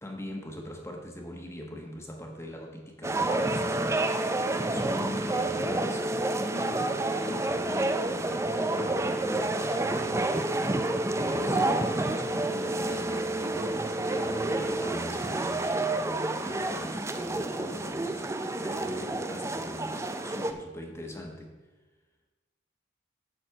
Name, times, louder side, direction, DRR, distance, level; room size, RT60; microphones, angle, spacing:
voice 1, 0.0-10.8 11.1-21.5, left 1 dB, 15° left, 1 dB, 1.2 m, -41 dB
sound 1, 3.0-20.5, right 2 dB, 15° right, 0.4 m, -29 dB
10.0 x 4.3 x 7.7 m, 1.3 s
head